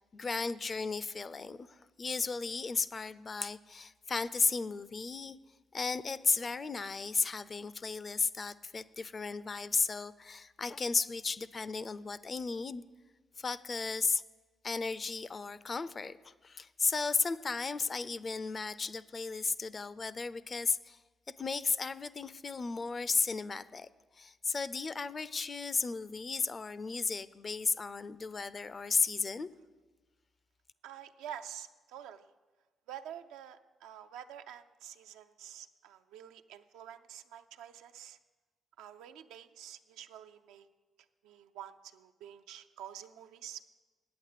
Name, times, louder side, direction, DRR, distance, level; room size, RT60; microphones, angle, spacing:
voice 1, 0.1-5.4 5.7-12.8 13.4-14.2 14.6-21.0 21.4-23.9 24.1-29.5, left 4 dB, 40° left, 16 dB, 0.5 m, -34 dB
voice 2, 30.8-32.3 32.9-38.2 38.8-40.7 41.2-43.6, right 10 dB, 90° right, 8 dB, 0.5 m, -48 dB
9.0 x 8.6 x 6.6 m, 1.3 s
supercardioid pair, 65°, 0 cm